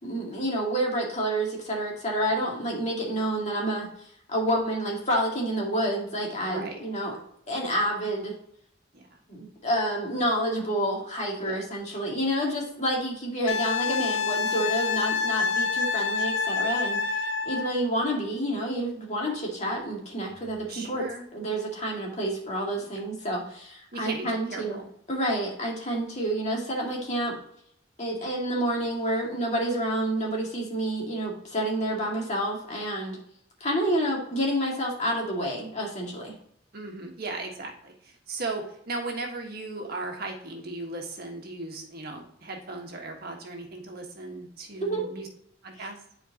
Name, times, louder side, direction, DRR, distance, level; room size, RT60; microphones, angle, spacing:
voice 1, 0.0-3.9 4.3-7.2 7.5-8.4 9.3-17.0 17.5-21.0 21.3-24.8 25.1-27.3 28.0-33.2 33.6-36.3 44.8-45.0 45.8-45.9, right 1 dB, 40° left, -2 dB, 2.1 m, -29 dB
voice 2, 6.4-6.8 8.9-9.1 11.4-11.6 14.4-14.6 20.7-21.2 22.8-23.0 23.9-24.9 36.7-45.3 45.6-46.0, right 2 dB, 55° right, 1 dB, 1.5 m, -37 dB
Wind instrument woodwind instrument, 13.5-17.7 20.4-20.5, left 5 dB, 80° left, 0.7 m, -27 dB
10.0 x 4.6 x 2.9 m, 0.70 s
head